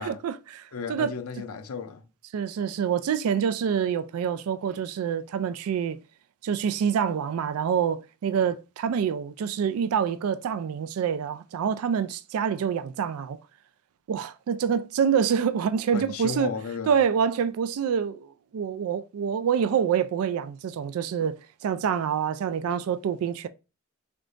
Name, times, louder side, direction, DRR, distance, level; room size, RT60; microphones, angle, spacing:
voice 1, 0.0-1.1 2.3-6.0 6.4-13.4 14.1-16.5 16.9-21.4 21.6-23.5, right 7 dB, 85° right, 0.3 m, -26 dB
voice 2, 0.7-2.0 15.9-17.0, left 5 dB, 90° left, 0.5 m, -34 dB
3.8 x 3.5 x 2.5 m
head